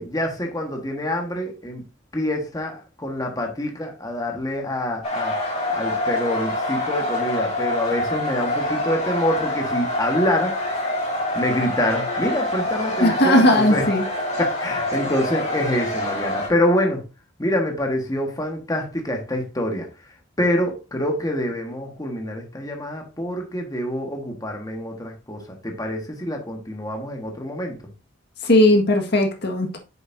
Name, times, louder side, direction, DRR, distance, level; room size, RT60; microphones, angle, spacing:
voice 1, 0.0-1.8 2.1-5.4 5.7-10.6 11.3-13.9 14.4-17.0 17.4-19.9 20.4-27.8, left 1 dB, 20° left, 1.5 m, -26 dB
sound 1, 5.0-16.5, left 1 dB, 35° left, 4.4 m, -26 dB
voice 2, 13.0-14.0 28.4-29.8, left 1 dB, 60° left, 1.7 m, -17 dB
9.1 x 7.0 x 2.7 m
head